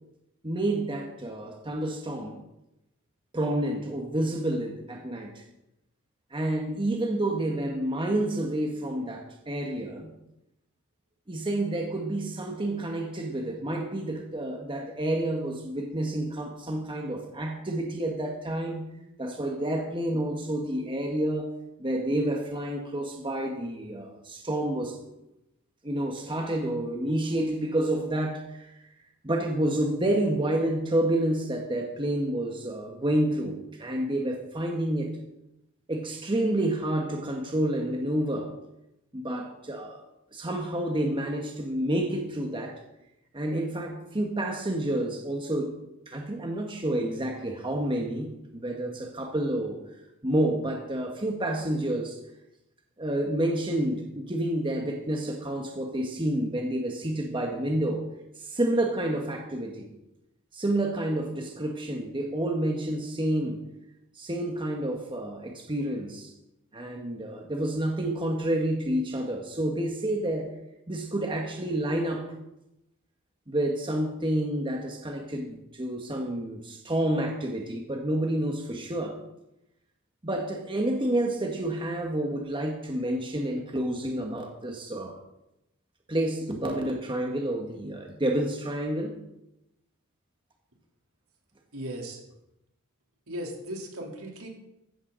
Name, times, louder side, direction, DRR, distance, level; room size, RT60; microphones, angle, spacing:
voice 1, 0.4-2.4 3.3-5.4 6.3-10.1 11.3-18.9 19.2-21.5 21.8-25.0 25.8-28.7 29.2-35.2 35.9-38.5 39.1-40.0 40.3-42.7 43.3-45.8 46.1-49.8 50.2-52.2 53.0-58.0 58.4-59.9 60.5-63.6 64.1-66.3 66.7-70.5 70.9-72.3 73.5-79.1 80.2-85.1 86.1-89.2, right 1 dB, 25° right, 2 dB, 1.6 m, -29 dB
voice 2, 91.7-92.2 93.3-94.5, equal, 80° right, 0 dB, 3.7 m, -37 dB
15.0 x 14.5 x 4.0 m, 0.88 s
head